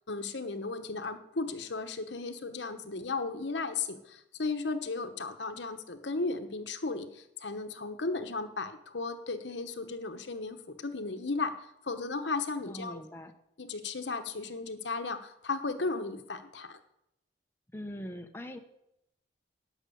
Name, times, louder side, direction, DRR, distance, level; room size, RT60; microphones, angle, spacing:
voice 1, 0.1-11.5 11.8-13.0 13.6-16.8, left 3 dB, 80° left, 8 dB, 1.1 m, -35 dB
voice 2, 12.6-13.3 17.7-18.6, equal, 15° left, 5 dB, 0.8 m, -41 dB
11.5 x 6.0 x 8.5 m, 0.81 s
head